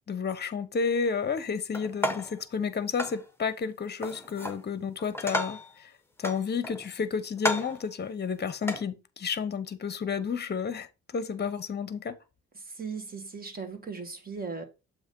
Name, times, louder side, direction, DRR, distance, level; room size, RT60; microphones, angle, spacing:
voice 1, 0.1-5.9 6.2-10.9 11.1-12.2, left 6 dB, 35° left, 0.9 m, -31 dB
sound 1, 1.7-2.4 3.0-3.2 4.0-4.6 5.0-5.7 6.2-6.9 7.4-7.8 8.6-8.8, left 1 dB, 10° left, 1.1 m, -32 dB
voice 2, 12.8-14.6, right 5 dB, 30° right, 1.6 m, -37 dB
7.2 x 3.0 x 5.3 m
cardioid pair, 90°, 30 cm